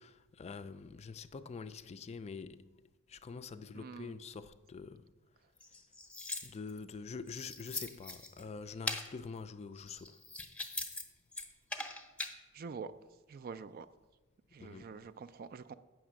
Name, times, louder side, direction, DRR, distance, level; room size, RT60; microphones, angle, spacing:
voice 1, 0.0-2.7 3.1-5.0 6.4-10.2 14.6-15.0, left 5 dB, 30° left, 0.3 m, -45 dB
voice 2, 3.7-4.1 12.5-12.9 13.3-13.9 14.5-15.7, right 5 dB, 45° right, 0.4 m, -46 dB
sound 1, 5.6-6.8 7.3-8.4 8.9-9.1 9.8-11.0 11.3-12.4, left 2 dB, 5° left, 0.7 m, -41 dB
7.9 x 5.9 x 7.4 m
head